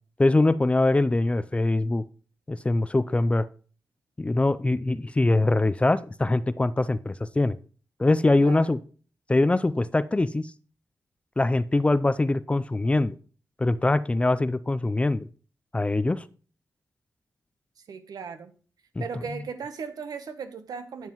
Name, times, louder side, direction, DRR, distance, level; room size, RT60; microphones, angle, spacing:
voice 1, 0.2-2.0 2.5-3.5 4.2-7.6 8.0-8.8 9.3-10.5 11.4-13.2 13.6-15.3 15.7-16.2 19.0-19.1, left 2 dB, 20° left, 0.4 m, -23 dB
voice 2, 8.4-8.7 17.9-18.5 19.0-21.1, right 6 dB, 80° right, 1.0 m, -37 dB
10.5 x 7.3 x 3.0 m
wide cardioid pair, 100°, 6 cm